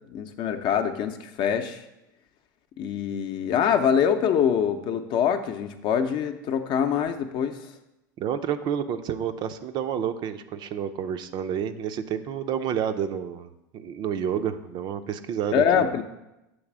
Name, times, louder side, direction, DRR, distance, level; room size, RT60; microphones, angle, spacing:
voice 1, 0.1-1.8 2.8-7.6 15.5-16.0, left 8 dB, 45° left, 7 dB, 0.7 m, -24 dB
voice 2, 8.2-15.9, right 8 dB, 45° right, 9 dB, 0.5 m, -29 dB
7.7 x 3.3 x 6.0 m, 0.92 s
hypercardioid pair, 100°, 11 cm